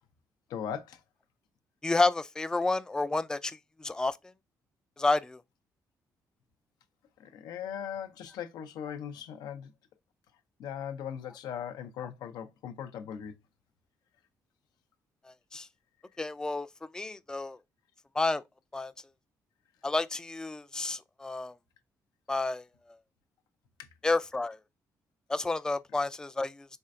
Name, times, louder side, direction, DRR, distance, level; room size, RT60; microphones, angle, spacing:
voice 1, 0.5-1.0 7.2-9.7 10.6-13.3 23.8-23.9, left 8 dB, 85° left, 0.6 m, -39 dB
voice 2, 1.8-4.2 5.0-5.4 15.5-15.7 16.2-16.7 16.9-17.6 18.2-18.4 18.7-18.9 19.8-21.5 22.3-22.7 24.0-24.6 25.3-26.7, left 3 dB, 10° left, 0.3 m, -30 dB
4.3 x 3.2 x 2.4 m
cardioid pair, 80°, 7 cm